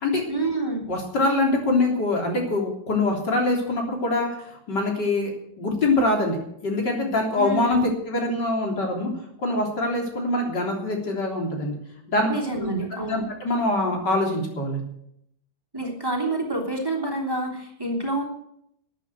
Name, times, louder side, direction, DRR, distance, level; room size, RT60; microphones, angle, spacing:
voice 1, 0.3-0.8 7.4-7.9 12.3-13.3 15.7-18.2, right 2 dB, 10° right, 0 dB, 3.1 m, -27 dB
voice 2, 0.9-5.3 5.6-6.4 6.6-7.8 8.1-9.1 9.4-11.8 12.1-12.3 12.6-12.7 13.1-14.8, left 2 dB, 65° left, 1 dB, 4.1 m, -24 dB
13.5 x 9.4 x 8.0 m, 0.73 s
omnidirectional pair, 2.0 m